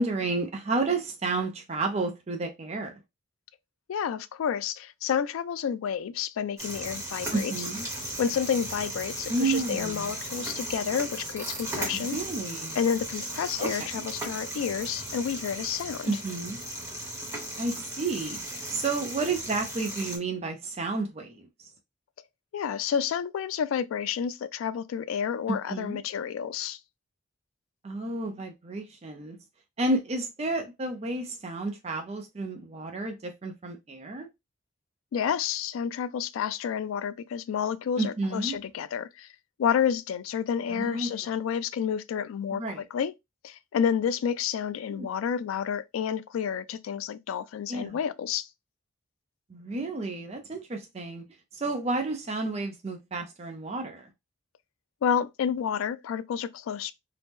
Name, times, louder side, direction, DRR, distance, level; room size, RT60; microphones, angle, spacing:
voice 1, 0.0-2.9 7.3-7.9 9.3-10.1 11.9-12.8 13.6-14.0 16.1-16.6 17.6-18.4 18.7-21.5 25.5-26.0 27.8-29.4 29.8-34.3 38.0-38.6 40.7-41.1 42.5-42.8 44.9-45.1 47.7-48.0 49.5-51.2 51.5-54.1, right 3 dB, 30° right, 0.4 m, -31 dB
voice 2, 3.9-7.5 8.2-12.2 12.8-16.1 22.5-26.8 35.1-39.3 39.6-42.6 42.9-43.1 43.4-48.5 55.0-56.9, left 8 dB, 90° left, 0.3 m, -30 dB
sound 1, 6.6-20.2, right 1 dB, 15° right, 0.9 m, -36 dB
2.8 x 2.0 x 3.4 m
head